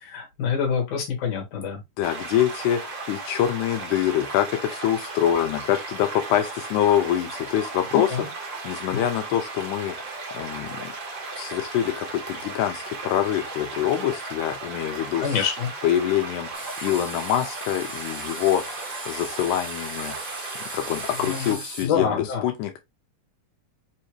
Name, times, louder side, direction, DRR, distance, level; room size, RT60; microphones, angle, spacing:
voice 1, 0.0-1.8 7.9-8.3 8.9-9.0 15.2-15.7 21.2-22.4, left 7 dB, 60° left, 2.6 m, -26 dB
voice 2, 2.0-8.2 8.6-10.9 11.4-15.5 15.8-20.2 20.7-22.8, left 11 dB, 90° left, 2.1 m, -25 dB
sound 1, 2.0-21.6, right 3 dB, 55° right, 1.4 m, -36 dB
sound 2, 16.5-21.8, right 1 dB, 30° right, 0.4 m, -38 dB
5.3 x 2.8 x 3.0 m
omnidirectional pair, 3.5 m